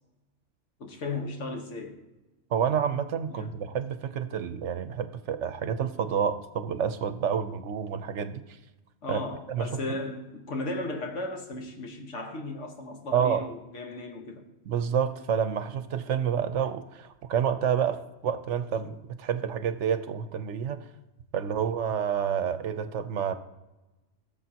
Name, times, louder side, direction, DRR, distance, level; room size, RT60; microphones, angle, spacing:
voice 1, 0.8-2.0 3.3-3.5 9.0-14.5, left 2 dB, 75° left, 1.6 m, -35 dB
voice 2, 2.5-8.4 9.1-9.2 9.5-10.0 13.1-13.5 14.7-20.8 21.3-23.3, right 8 dB, 80° right, 1.0 m, -29 dB
18.0 x 6.9 x 2.8 m
omnidirectional pair, 1.2 m